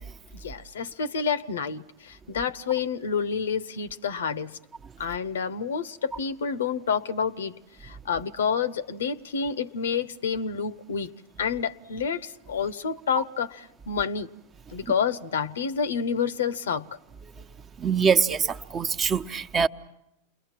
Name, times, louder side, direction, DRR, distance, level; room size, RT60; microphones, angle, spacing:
voice 1, 0.4-4.6 5.0-7.5 7.8-11.1 11.4-14.3 14.7-16.9, left 6 dB, 80° left, 0.9 m, -29 dB
voice 2, 17.8-19.7, right 6 dB, 30° right, 0.9 m, -23 dB
28.5 x 21.5 x 7.4 m
hypercardioid pair, 100°, 0 cm